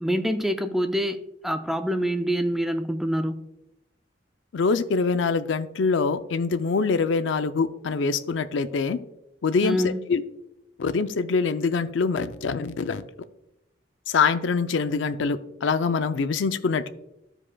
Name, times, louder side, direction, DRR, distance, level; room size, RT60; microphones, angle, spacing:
voice 1, 0.0-3.4 9.6-10.0, equal, ahead, 8 dB, 0.4 m, -26 dB
voice 2, 4.5-9.0 9.4-10.2 10.8-13.0 14.1-16.9, left 4 dB, 85° left, 11 dB, 0.5 m, -24 dB
15.0 x 5.0 x 2.2 m, 0.88 s
head